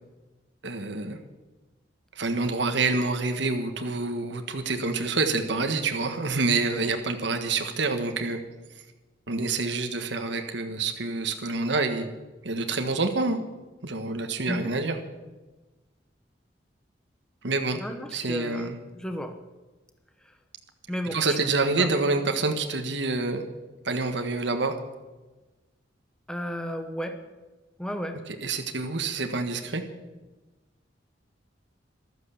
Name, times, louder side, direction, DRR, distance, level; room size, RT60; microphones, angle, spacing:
voice 1, 0.6-1.2 2.1-8.4 9.3-12.1 12.4-13.4 13.8-15.0 17.4-17.8 18.1-18.8 21.1-23.4 23.8-24.7 28.3-29.8, right 3 dB, 70° right, 5 dB, 1.4 m, -27 dB
voice 2, 17.8-19.3 20.3-20.4 20.9-21.2 21.8-21.9 26.3-27.2 27.8-28.2, equal, 5° left, 6 dB, 1.1 m, -33 dB
14.0 x 12.5 x 7.1 m, 1.2 s
head